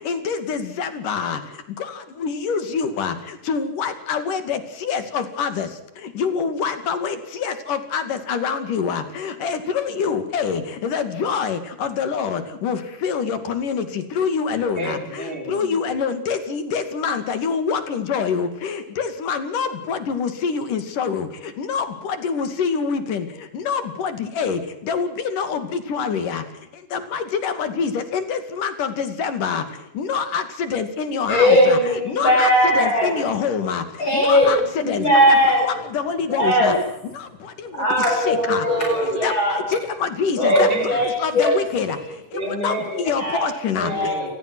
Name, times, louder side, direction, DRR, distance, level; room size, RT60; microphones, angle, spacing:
voice 1, 0.0-1.4 2.2-3.1 3.5-5.7 6.2-7.2 7.4-13.8 14.2-15.0 15.5-21.3 21.6-23.3 23.7-24.6 24.9-25.6 25.9-26.4 26.9-29.6 30.0-33.8 34.1-35.0 35.6-36.7 38.3-38.6 39.2-39.3 39.7-40.7 41.2-42.0 42.6-42.7 43.1-43.9, left 6 dB, 75° left, 10 dB, 4.0 m, -25 dB
voice 2, 14.8-15.7 38.6-39.2 40.5-41.0 42.3-43.1 43.8-44.3, right 1 dB, 15° right, 3 dB, 4.9 m, -30 dB
voice 3, 31.3-33.1 34.0-35.7 36.4-36.7 37.8-39.6 40.4-41.5 43.2-43.4 43.9-44.2, equal, 35° left, -1 dB, 8.3 m, -18 dB
28.0 x 19.5 x 6.3 m, 0.84 s
omnidirectional pair, 3.8 m